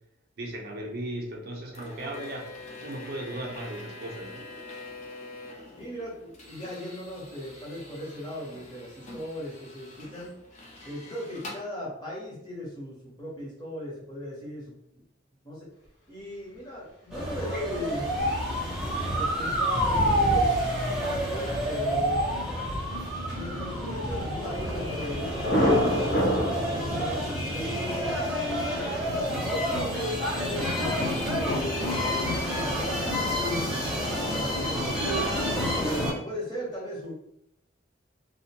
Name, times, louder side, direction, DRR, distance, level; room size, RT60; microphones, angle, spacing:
voice 1, 0.4-2.5 2.8-4.4, right 1 dB, 55° right, -1 dB, 0.4 m, -36 dB
sound 1, 1.7-11.6, left 2 dB, 40° left, 0.5 m, -45 dB
voice 2, 5.8-10.3 10.8-15.0 15.4-15.7 16.1-18.2 19.0-20.6 21.0-22.2 23.3-28.1 28.7-29.2 29.5-35.2 35.8-37.1, left 1 dB, 25° left, -5 dB, 0.9 m, -37 dB
sound 2, 17.1-36.1, equal, 5° right, 0.6 m, -29 dB
Thunder, 18.2-27.2, equal, 85° left, 1.0 m, -30 dB
2.5 x 2.1 x 2.8 m, 0.78 s
head